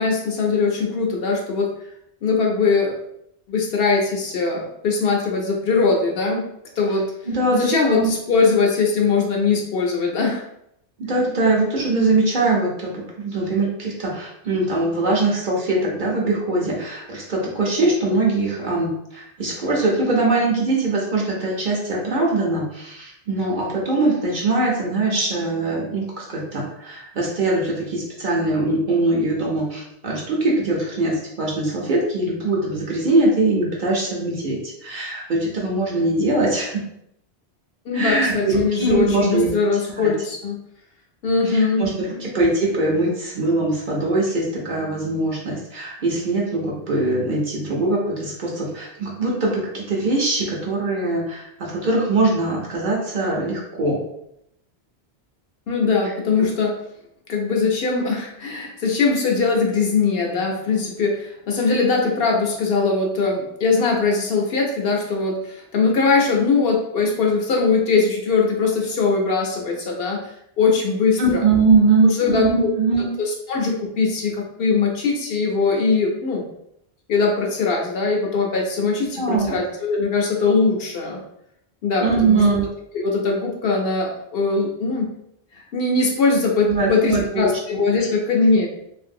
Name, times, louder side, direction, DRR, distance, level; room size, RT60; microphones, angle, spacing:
voice 1, 0.0-1.7 2.2-3.0 3.5-6.5 6.8-7.0 7.5-10.4 37.9-40.6 41.2-42.2 55.7-56.8 57.3-70.2 70.6-71.4 72.0-72.7 73.2-76.4 77.1-81.2 81.8-82.4 82.9-85.1 85.6-88.7, left 4 dB, 65° left, 0 dB, 0.8 m, -21 dB
voice 2, 7.3-8.1 11.0-36.8 37.9-39.5 39.9-40.1 41.5-54.0 71.2-73.1 79.2-79.6 82.0-82.6 86.7-87.5, right 2 dB, 50° right, -3 dB, 0.9 m, -22 dB
3.1 x 2.5 x 2.6 m, 0.77 s
omnidirectional pair, 1.1 m